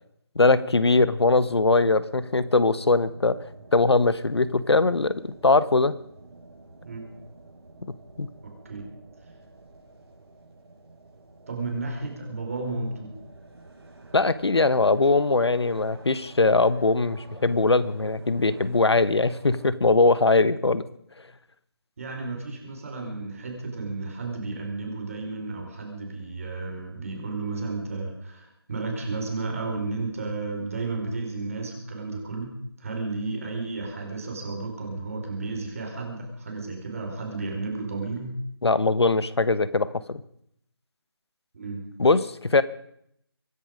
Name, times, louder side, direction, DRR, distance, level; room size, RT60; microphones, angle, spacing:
voice 1, 0.3-3.4 3.7-5.9 8.2-8.3 14.1-20.8 38.6-40.2 42.0-42.6, left 3 dB, 80° left, 16 dB, 1.3 m, -21 dB
sound 1, 0.7-19.7, right 2 dB, 75° right, 6.7 m, -49 dB
voice 2, 8.4-8.8 11.5-13.1 22.0-32.5 32.8-38.3 41.5-41.9, right 3 dB, 35° right, 1 dB, 4.5 m, -33 dB
24.5 x 10.5 x 5.1 m, 0.71 s
figure-of-eight pair, 170°, 13 cm